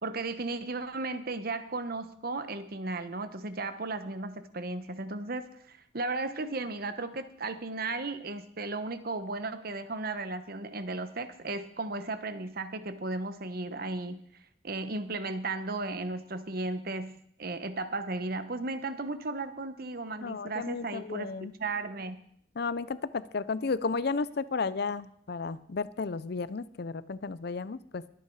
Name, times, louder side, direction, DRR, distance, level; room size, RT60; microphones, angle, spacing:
voice 1, 0.0-14.2 14.6-21.3 21.6-22.2, right 3 dB, 50° right, 11 dB, 1.1 m, -35 dB
voice 2, 20.2-21.5 22.6-28.0, left 4 dB, 55° left, 17 dB, 0.5 m, -33 dB
22.0 x 8.4 x 4.8 m, 0.65 s
head